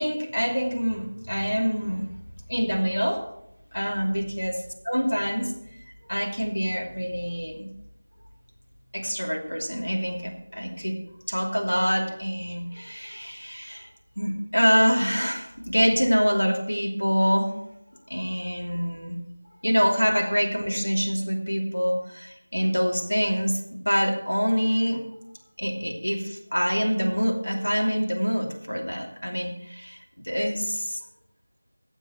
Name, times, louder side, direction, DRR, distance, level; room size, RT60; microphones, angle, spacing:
voice 1, 0.0-2.1 2.5-3.2 3.7-4.5 4.8-5.5 6.1-7.7 8.9-11.0 11.3-13.9 14.2-17.5 18.1-19.2 19.6-25.0 25.6-31.0, equal, 75° left, 1 dB, 2.7 m, -25 dB
16.5 x 7.4 x 4.3 m, 0.80 s
figure-of-eight pair, 170°, 0 cm